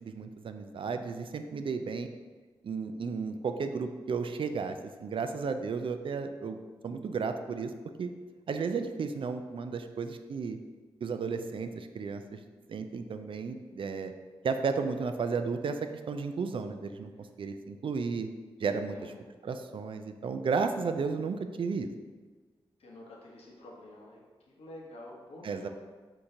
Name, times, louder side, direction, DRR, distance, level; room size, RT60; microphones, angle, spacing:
voice 1, 0.0-2.1 2.6-6.6 6.8-7.7 8.0-8.1 8.5-10.6 11.0-12.4 12.7-14.1 14.4-15.8 16.1-17.1 17.4-18.3 18.6-19.1 19.4-21.9 25.4-25.7, right 5 dB, 60° right, 8 dB, 0.4 m, -33 dB
voice 2, 18.9-19.2 22.8-24.2 24.5-25.7, left 1 dB, 75° left, -2 dB, 0.9 m, -48 dB
4.4 x 3.7 x 2.7 m, 1.4 s
cardioid pair, 55°, 10 cm